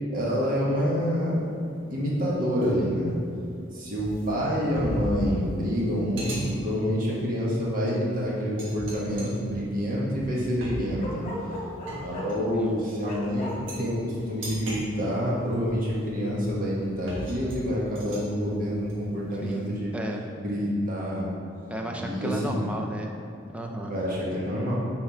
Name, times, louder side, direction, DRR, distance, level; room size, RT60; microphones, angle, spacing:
voice 1, 0.1-1.4 1.9-3.1 3.7-11.3 12.0-19.9 20.4-21.3 21.9-22.6 23.9-24.7, equal, 45° right, -5 dB, 1.4 m, -27 dB
sound 1, 1.0-1.3 1.8-1.9 2.6-19.7, equal, 65° right, 1.4 m, -39 dB
Bark, 11.0-12.4 13.0-13.5, left 1 dB, 35° left, 1.3 m, -36 dB
voice 2, 19.9-20.2 21.7-23.1 23.5-23.9, right 1 dB, 5° right, 1 dB, 0.5 m, -33 dB
5.9 x 4.4 x 4.4 m, 2.6 s
head